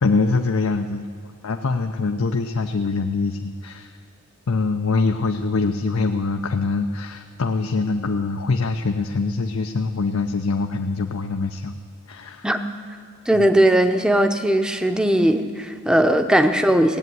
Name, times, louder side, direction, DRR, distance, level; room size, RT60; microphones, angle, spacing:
voice 1, 0.0-1.1 1.4-3.9 4.5-11.8 12.1-12.5 13.3-13.5, left 3 dB, 90° left, 5 dB, 0.6 m, -23 dB
voice 2, 13.3-17.0, right 1 dB, 5° right, 7 dB, 0.7 m, -18 dB
18.0 x 8.2 x 9.3 m, 2.3 s
head